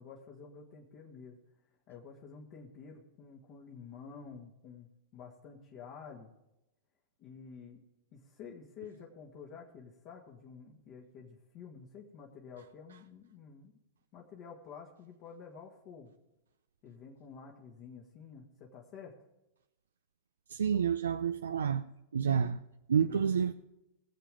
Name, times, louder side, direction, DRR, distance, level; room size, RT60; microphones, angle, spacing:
voice 1, 0.0-1.4 1.7-6.3 7.2-7.8 8.1-13.7 14.1-16.1 16.8-19.2 22.2-22.5 23.1-23.2, left 6 dB, 50° left, 2.1 m, -50 dB
voice 2, 20.5-21.8 22.1-22.6 22.9-23.5, right 7 dB, 85° right, 0.4 m, -29 dB
19.0 x 7.6 x 5.1 m
hypercardioid pair, 105°, 0 cm